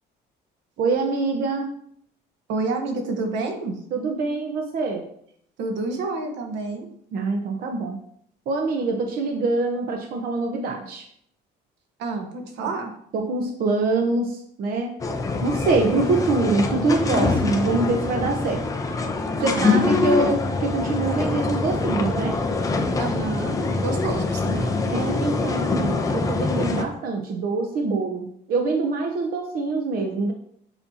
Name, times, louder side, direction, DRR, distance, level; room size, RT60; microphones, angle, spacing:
voice 1, 0.8-1.7 3.9-5.0 7.1-8.0 8.5-11.0 13.1-14.9 15.4-18.6 19.4-22.4 24.9-30.3, right 3 dB, 55° right, 3 dB, 0.9 m, -24 dB
voice 2, 2.5-3.8 5.6-6.9 12.0-12.9 19.4-19.9 20.2-20.4 23.0-24.8, right 3 dB, 80° right, 4 dB, 1.2 m, -29 dB
sound 1, 15.0-26.8, left 3 dB, 20° left, 0.6 m, -24 dB
7.2 x 5.4 x 2.8 m, 0.66 s
cardioid pair, 150°, 18 cm